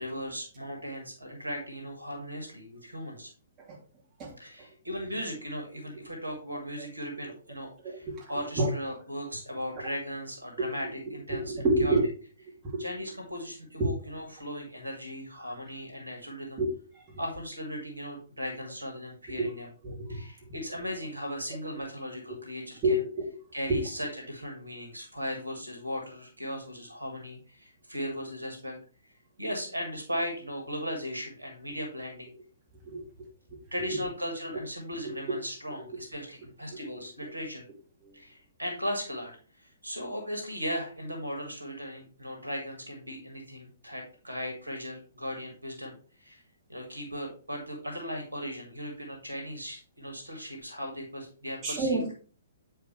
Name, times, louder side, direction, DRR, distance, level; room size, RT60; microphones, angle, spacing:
voice 1, 0.0-3.3 4.4-12.0 12.8-16.6 17.2-19.7 20.1-23.0 23.5-28.8 29.4-32.3 33.7-37.6 38.1-39.3 39.6-45.9 46.2-46.4 46.7-52.1, equal, 80° right, 2 dB, 1.8 m, -37 dB
voice 2, 7.8-8.2 8.6-8.7 11.3-12.0 12.6-12.8 13.8-13.9 16.6-16.7 19.4-19.5 19.8-20.2 22.8-23.0 23.3-23.4 23.7-23.8 32.9-33.3 33.9-34.0 38.0-38.2 51.6-52.1, right 2 dB, 20° right, -4 dB, 2.6 m, -27 dB
8.4 x 4.5 x 3.2 m, 0.39 s
figure-of-eight pair, 120°, 0 cm